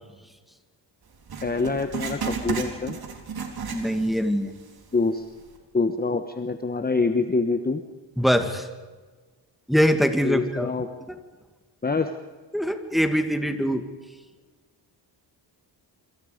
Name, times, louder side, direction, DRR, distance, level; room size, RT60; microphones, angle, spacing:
Writing, 1.3-4.3 4.6-4.7 5.4-5.5, right 6 dB, 55° right, 4.0 m, -33 dB
voice 1, 1.4-3.0 4.9-5.3 5.7-7.8 10.2-10.9 11.8-12.1, left 3 dB, 20° left, 8 dB, 1.2 m, -25 dB
voice 2, 3.7-4.5 8.2-8.7 9.7-10.7 12.5-13.8, equal, ahead, 6 dB, 2.2 m, -23 dB
27.5 x 25.5 x 5.2 m, 1.3 s
wide cardioid pair, 120°, 44 cm